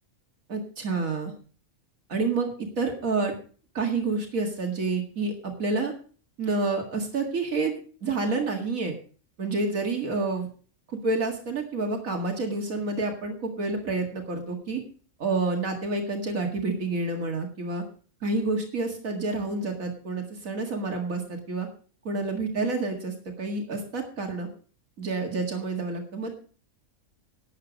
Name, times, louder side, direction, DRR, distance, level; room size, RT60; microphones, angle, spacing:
voice 1, 0.5-1.3 2.1-3.3 3.7-5.9 6.4-8.9 9.4-10.5 10.9-14.8 15.2-17.8 18.2-21.7 22.0-24.5 25.0-26.4, right 3 dB, 80° right, 2 dB, 2.4 m, -29 dB
12.5 x 8.7 x 5.2 m, 0.41 s
omnidirectional pair, 1.4 m